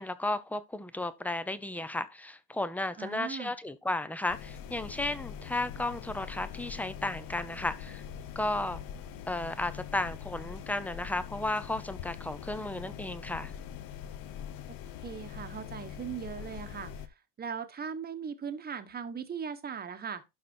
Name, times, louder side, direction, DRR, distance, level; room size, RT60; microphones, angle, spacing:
voice 1, 0.0-8.0 8.4-8.8 9.3-13.5, left 2 dB, 5° left, 0.7 m, -34 dB
voice 2, 3.0-3.5 15.0-16.9 17.4-20.2, right 7 dB, 25° right, 1.2 m, -38 dB
sound 1, 4.3-17.1, left 9 dB, 60° left, 1.2 m, -43 dB
12.0 x 4.2 x 4.5 m
cardioid pair, 135°, 41 cm